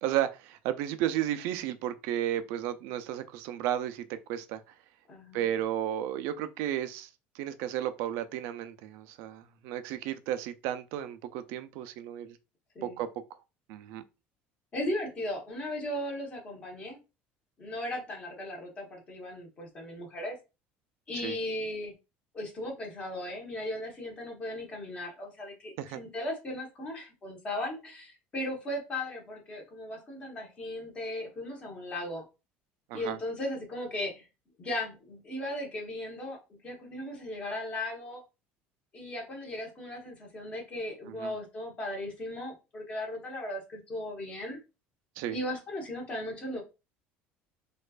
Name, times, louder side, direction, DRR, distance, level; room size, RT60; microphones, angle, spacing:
voice 1, 0.0-4.6 5.3-7.1 7.3-12.4 12.8-13.1 13.7-14.0 21.2-21.4 25.8-26.0 32.9-33.2 41.2-41.3 45.2-45.4, right 11 dB, 70° right, 0.4 m, -33 dB
voice 2, 5.1-5.5 12.7-13.0 14.7-17.0 17.6-20.4 21.1-21.9 22.3-32.2 32.9-34.3 34.6-38.2 38.9-44.6 45.3-46.6, left 1 dB, 25° left, 1.1 m, -37 dB
4.2 x 2.4 x 2.4 m
cardioid pair, 165°, 4 cm